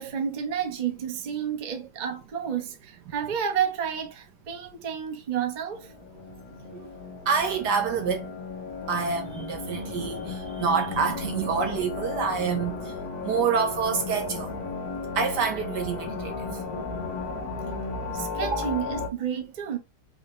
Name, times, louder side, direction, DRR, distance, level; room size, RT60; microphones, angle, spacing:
voice 1, 0.0-5.9 18.1-19.8, right 8 dB, 40° right, 0.7 m, -30 dB
sound 1, 5.7-19.1, left 4 dB, 55° left, 1.7 m, -34 dB
voice 2, 7.3-8.3 8.9-12.9 13.2-14.5 15.1-16.3 18.4-18.6, right 6 dB, 65° right, 1.2 m, -27 dB
5.6 x 2.8 x 3.1 m
omnidirectional pair, 2.2 m